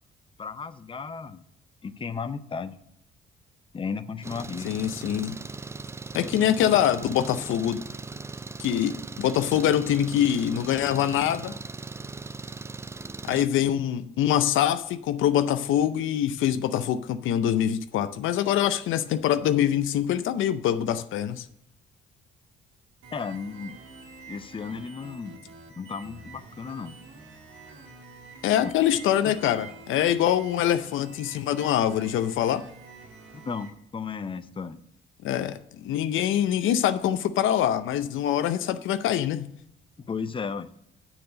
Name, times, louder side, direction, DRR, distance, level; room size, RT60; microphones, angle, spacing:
voice 1, 0.4-1.4 1.8-2.8 3.7-4.7 23.1-23.8 24.3-25.4 25.8-27.0 29.2-29.3 33.3-34.8 40.0-40.7, left 5 dB, 25° left, 0.6 m, -34 dB
Engine, 4.2-13.5, right 4 dB, 15° right, 0.3 m, -39 dB
voice 2, 4.6-5.4 6.1-7.8 8.6-11.5 13.2-21.5 28.4-32.6 35.2-39.5, left 10 dB, 80° left, 0.6 m, -24 dB
sound 1, 23.0-33.7, right 4 dB, 90° right, 1.6 m, -47 dB
6.8 x 5.9 x 7.5 m
cardioid pair, 90°, 20 cm